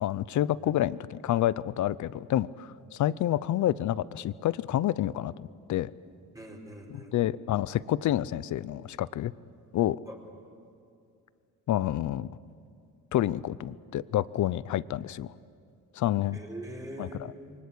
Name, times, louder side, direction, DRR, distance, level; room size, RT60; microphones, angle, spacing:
voice 1, 0.0-5.9 6.9-9.3 9.7-10.0 11.7-12.3 13.1-15.3 15.9-16.4 17.0-17.3, left 12 dB, 60° left, 18 dB, 0.7 m, -28 dB
voice 2, 6.3-7.1 10.1-10.2 16.3-17.5, right 1 dB, 10° right, -1 dB, 4.4 m, -43 dB
28.0 x 24.0 x 8.6 m, 2.4 s
cardioid pair, 130°, 34 cm